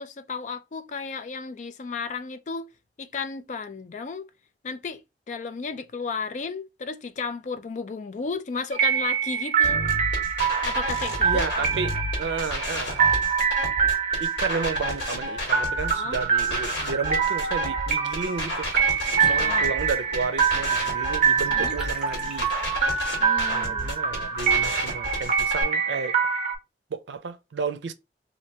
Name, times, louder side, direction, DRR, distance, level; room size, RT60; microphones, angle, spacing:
voice 1, 0.0-2.7 3.0-4.3 4.6-9.8 10.6-11.5 15.9-16.2 19.3-19.7 21.5-21.8 23.2-23.9, left 4 dB, 45° left, 0.3 m, -33 dB
sound 1, 8.7-26.6, right 7 dB, 40° right, 0.7 m, -25 dB
sound 2, 9.6-25.6, left 1 dB, 80° left, 1.5 m, -31 dB
voice 2, 11.2-13.0 14.2-18.9 19.2-22.5 23.5-26.2 26.9-27.9, right 5 dB, 90° right, 0.5 m, -32 dB
Water / Bathtub (filling or washing), 19.1-23.2, equal, 5° right, 0.8 m, -43 dB
2.8 x 2.5 x 3.2 m
head